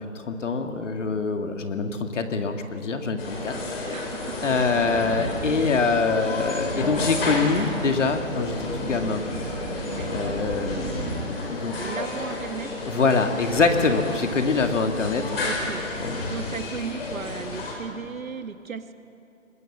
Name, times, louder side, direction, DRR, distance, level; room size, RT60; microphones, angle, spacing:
voice 1, 0.2-3.5 4.4-9.2 10.1-12.0 12.9-15.5 16.0-16.2, left 4 dB, 60° left, 5 dB, 2.1 m, -25 dB
sound 1, 3.2-17.7, left 2 dB, 45° left, 5.7 m, -32 dB
voice 2, 3.9-4.8 9.8-10.2 11.8-12.7 15.4-15.8 16.3-18.9, right 6 dB, 75° right, 9 dB, 1.6 m, -36 dB
sound 2, 4.6-11.3, right 2 dB, 25° right, 2.6 m, -35 dB
23.5 x 20.5 x 7.3 m, 2.7 s
hypercardioid pair, 160°, 41 cm